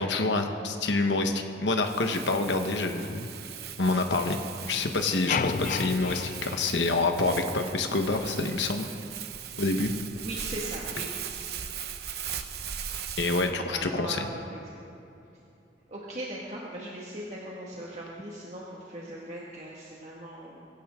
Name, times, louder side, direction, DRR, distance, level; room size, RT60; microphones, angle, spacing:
voice 1, 0.0-3.3 3.8-4.4 4.7-8.9 9.6-9.9 13.2-14.3, left 3 dB, 90° left, 5 dB, 1.1 m, -27 dB
Crumpling crinkling, 1.8-13.5, right 8 dB, 60° right, 0.9 m, -39 dB
sound 1, 5.3-7.6, left 5 dB, 45° left, 0.4 m, -32 dB
voice 2, 10.1-11.1 13.6-15.0 15.9-20.7, right 1 dB, 40° right, -5 dB, 1.8 m, -39 dB
22.0 x 16.5 x 3.7 m, 2.8 s
head